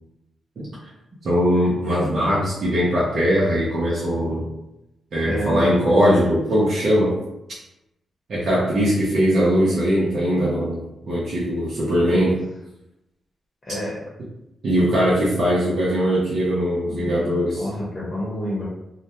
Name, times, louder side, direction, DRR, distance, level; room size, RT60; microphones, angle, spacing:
voice 1, 1.2-4.5 5.1-7.1 8.3-12.4 14.6-17.6, equal, 60° right, -8 dB, 0.7 m, -20 dB
voice 2, 5.3-6.2 12.1-12.2 13.6-14.0 17.5-18.6, equal, 30° left, -6 dB, 0.8 m, -29 dB
2.4 x 2.1 x 2.9 m, 0.90 s
cardioid pair, 85°, 0 cm